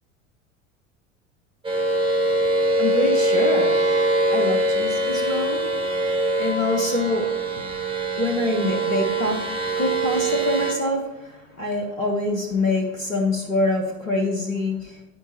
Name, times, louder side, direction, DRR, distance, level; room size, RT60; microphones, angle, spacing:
sound 1, 1.6-10.7, right 2 dB, 15° right, 1.6 m, -23 dB
voice 1, 2.2-15.0, left 2 dB, 85° left, 3 dB, 1.2 m, -26 dB
9.3 x 9.3 x 2.9 m, 0.98 s
figure-of-eight pair, 75°, 39 cm